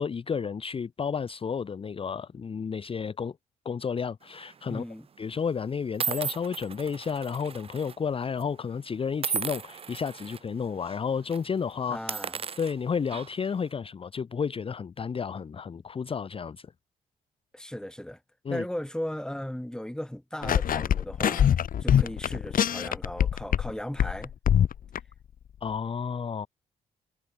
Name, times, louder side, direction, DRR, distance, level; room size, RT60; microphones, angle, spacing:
voice 1, 0.0-3.4 3.6-4.8 5.2-12.0 12.6-16.7 18.4-18.6 25.6-26.5, left 6 dB, 30° left, 0.6 m, -31 dB
sound 1, 4.3-4.6 5.4-5.5 6.0-8.0 8.2-8.4 9.2-10.4 10.8-11.0 11.3-11.4 11.9-13.5, right 7 dB, 35° right, 0.5 m, -35 dB
voice 2, 4.7-5.1 11.9-12.4 17.5-18.2 18.5-24.3, left 1 dB, 5° left, 2.0 m, -36 dB
sound 2, 20.4-23.7 24.0-25.0, left 9 dB, 50° left, 1.0 m, -24 dB
hypercardioid pair, 45°, 18 cm